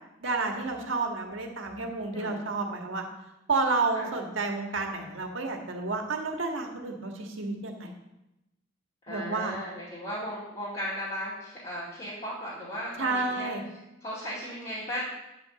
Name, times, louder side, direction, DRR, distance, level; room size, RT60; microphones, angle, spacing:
voice 1, 0.2-3.0 3.5-7.9 9.1-9.6 13.0-13.6, right 3 dB, 75° right, 2 dB, 1.6 m, -30 dB
voice 2, 2.1-2.4 3.9-4.1 9.0-13.5 14.0-15.0, equal, 30° left, -9 dB, 2.6 m, -36 dB
9.6 x 5.3 x 7.1 m, 0.92 s
head